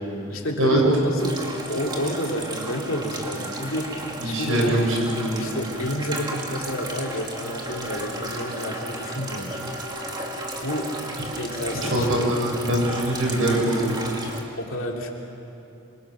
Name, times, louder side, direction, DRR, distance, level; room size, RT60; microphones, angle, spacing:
voice 1, 0.3-4.8 5.4-9.6 10.6-11.0 11.4-12.3 14.6-15.1, left 1 dB, 65° left, 0 dB, 3.0 m, -30 dB
sound 1, 1.2-14.4, right 1 dB, 20° right, 2.3 m, -33 dB
voice 2, 4.2-5.4 11.8-13.9, right 1 dB, 65° right, -1 dB, 7.0 m, -23 dB
27.0 x 25.5 x 6.4 m, 3.0 s
head